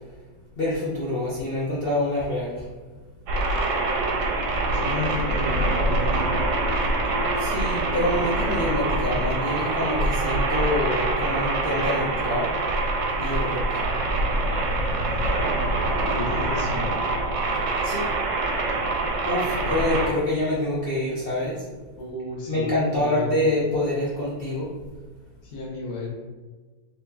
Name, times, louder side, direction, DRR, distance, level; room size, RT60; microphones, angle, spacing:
voice 1, 0.6-2.7 7.4-12.5 13.2-13.9 17.8-18.0 19.3-21.6 22.5-24.7, left 1 dB, 50° left, -7 dB, 0.7 m, -26 dB
sound 1, 3.3-20.1, right 2 dB, 65° right, 1.0 m, -25 dB
voice 2, 4.7-6.5 16.1-17.0 22.0-23.5 25.4-26.1, left 3 dB, 75° left, -3 dB, 1.5 m, -33 dB
4.1 x 3.5 x 2.7 m, 1.3 s
omnidirectional pair, 1.6 m